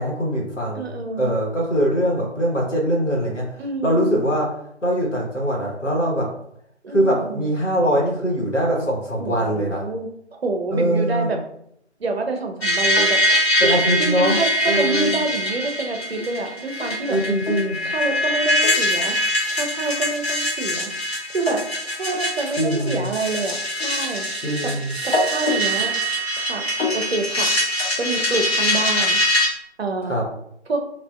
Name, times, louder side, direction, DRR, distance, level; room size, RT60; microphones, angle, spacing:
voice 1, 0.0-0.9 1.2-3.4 3.8-4.5 4.8-6.3 6.9-9.8 10.7-11.3 13.6-14.4 14.7-15.2 17.1-17.8 22.6-23.1 24.4-24.9 30.1-30.2, equal, 90° left, -2 dB, 1.1 m, -22 dB
voice 2, 0.7-1.3 3.6-4.2 6.8-7.5 9.2-11.4 12.0-13.7 14.0-17.2 17.8-19.2 19.5-20.9 21.3-23.6 23.8-24.3 24.6-24.7 25.0-25.9 26.4-26.6 26.9-27.5 28.0-29.2 29.8-30.2 30.7-30.8, right 3 dB, 60° right, 5 dB, 0.6 m, -27 dB
sound 1, 12.6-29.5, equal, 60° left, 0.9 m, -23 dB
3.2 x 2.4 x 2.4 m, 0.72 s
figure-of-eight pair, 150°, 36 cm